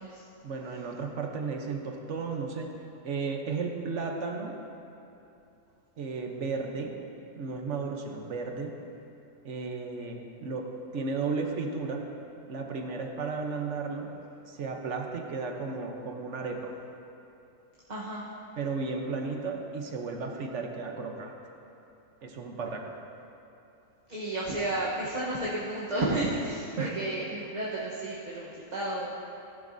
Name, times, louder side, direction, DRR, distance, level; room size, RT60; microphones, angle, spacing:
voice 1, 0.4-2.8 3.0-4.6 6.0-7.0 7.4-8.8 9.4-12.1 12.5-14.1 14.5-16.7 18.6-21.3 22.2-22.9 26.8-26.9, right 4 dB, 60° right, 3 dB, 1.1 m, -34 dB
voice 2, 17.9-18.2 24.1-29.2, right 1 dB, 35° right, -6 dB, 1.1 m, -32 dB
14.0 x 11.0 x 2.6 m, 2.8 s
omnidirectional pair, 1.5 m